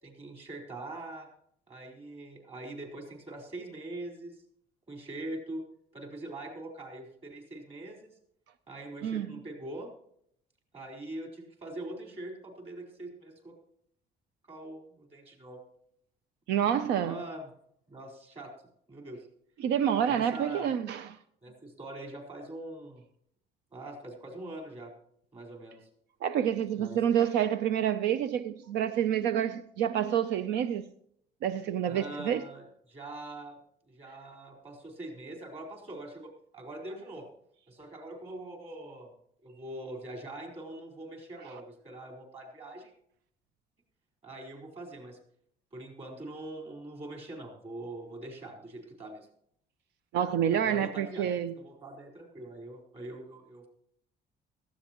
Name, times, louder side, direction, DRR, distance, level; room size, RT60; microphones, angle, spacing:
voice 1, 0.0-1.3 1.7-4.4 4.9-5.6 5.9-8.1 8.7-9.9 10.7-13.5 14.5-15.6 17.0-17.5 17.9-18.5 18.9-19.3 20.1-20.7 21.4-23.0 23.7-24.9 25.3-25.9 26.8-27.0 31.9-33.6 33.9-37.3 37.7-39.1 39.4-42.9 44.2-45.2 45.7-49.3 50.5-51.3 51.6-53.7, right 1 dB, 35° right, 4.3 m, -43 dB
voice 2, 9.0-9.4 16.5-17.2 19.6-21.2 26.2-30.9 31.4-32.4 50.1-51.6, right 9 dB, 90° right, 0.6 m, -28 dB
17.5 x 14.5 x 3.0 m
cardioid pair, 130°, 17 cm